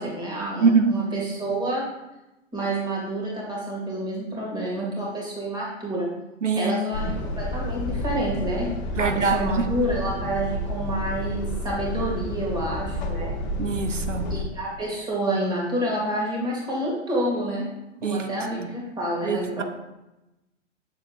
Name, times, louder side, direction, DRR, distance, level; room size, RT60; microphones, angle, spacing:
voice 1, 0.0-1.8 2.5-6.1 6.6-8.7 9.0-13.4 14.3-17.7 18.0-19.6, right 1 dB, 10° right, -3 dB, 2.2 m, -28 dB
voice 2, 0.6-1.0 6.4-6.7 9.0-9.7 13.6-14.3 18.0-18.3 19.2-19.6, right 5 dB, 80° right, 8 dB, 0.8 m, -23 dB
sound 1, 6.9-14.4, left 1 dB, 35° left, 0.8 m, -30 dB
7.6 x 6.9 x 2.5 m, 0.95 s
figure-of-eight pair, 105°, 37 cm